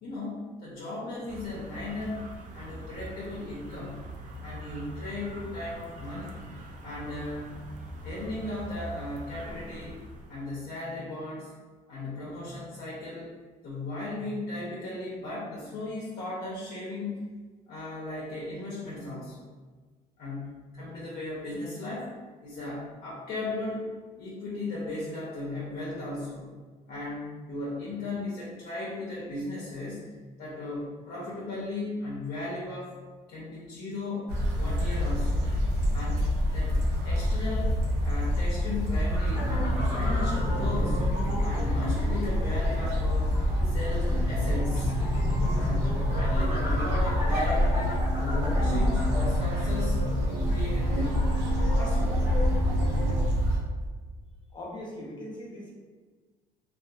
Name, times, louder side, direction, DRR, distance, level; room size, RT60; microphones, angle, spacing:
voice 1, 0.0-2.2 2.5-4.1 4.4-6.5 6.8-7.5 8.0-10.0 10.3-11.5 11.9-13.3 13.6-17.2 17.7-19.5 20.2-22.1 22.4-23.9 24.2-26.5 26.9-30.0 30.4-33.0 33.3-34.3 34.6-35.4 35.9-36.2 36.5-37.7 38.0-41.0 41.4-43.4 43.6-44.9 45.5-51.4 51.7-52.3, left 2 dB, 70° left, -6 dB, 0.7 m, -36 dB
sound 1, 1.3-10.6, equal, 50° right, 0.4 m, -43 dB
sound 2, 34.3-53.6, left 1 dB, 85° right, 0.7 m, -27 dB
sound 3, 39.3-53.2, right 1 dB, 30° right, 0.9 m, -33 dB
voice 2, 54.5-55.7, left 1 dB, 25° left, -4 dB, 0.8 m, -40 dB
2.6 x 2.4 x 2.3 m, 1.4 s
cardioid pair, 110°, 17 cm